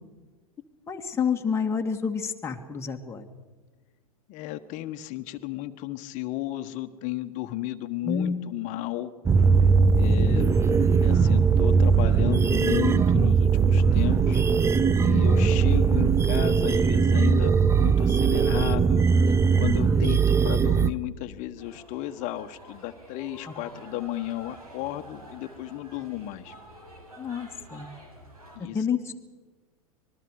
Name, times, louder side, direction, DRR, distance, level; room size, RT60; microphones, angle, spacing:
voice 1, 0.9-3.2 8.0-8.4 10.3-10.5 15.1-15.5 23.5-23.6 27.2-27.9 28.7-29.1, left 6 dB, 15° left, 2 dB, 2.0 m, -29 dB
voice 2, 4.3-9.1 9.9-10.5 11.0-14.4 15.0-17.5 17.8-19.2 19.6-26.5 28.5-28.8, left 15 dB, 45° left, 9 dB, 1.4 m, -34 dB
sound 1, 9.3-20.9, right 5 dB, 15° right, 0.7 m, -20 dB
sound 2, 21.6-28.6, right 1 dB, 85° right, 6.7 m, -48 dB
25.5 x 20.5 x 4.9 m, 1.3 s
hypercardioid pair, 100°, 18 cm